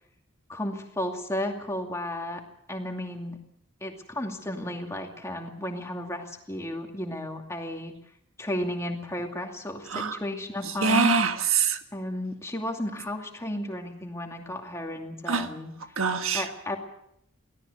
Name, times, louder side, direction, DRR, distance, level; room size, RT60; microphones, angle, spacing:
voice 1, 0.5-2.4 2.7-3.4 3.8-7.9 8.4-11.1 11.9-15.7 16.3-16.8, left 1 dB, 15° left, 3 dB, 2.4 m, -33 dB
voice 2, 10.8-11.8 15.3-15.5 16.0-16.4, right 5 dB, 80° right, 8 dB, 1.6 m, -24 dB
24.0 x 17.0 x 6.8 m, 0.73 s
head